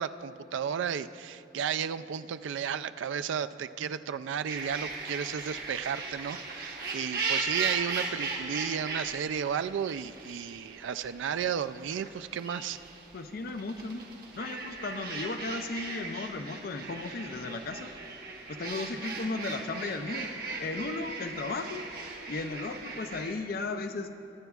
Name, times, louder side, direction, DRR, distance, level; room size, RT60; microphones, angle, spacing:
voice 1, 0.0-12.8, right 8 dB, 85° right, 12 dB, 0.3 m, -33 dB
sound 1, 4.5-23.3, right 4 dB, 55° right, 1.3 m, -38 dB
voice 2, 13.1-14.1 14.3-17.9 18.5-20.3 20.6-21.9 22.3-24.1, left 3 dB, 55° left, 8 dB, 0.5 m, -35 dB
23.0 x 9.0 x 2.4 m, 2.6 s
head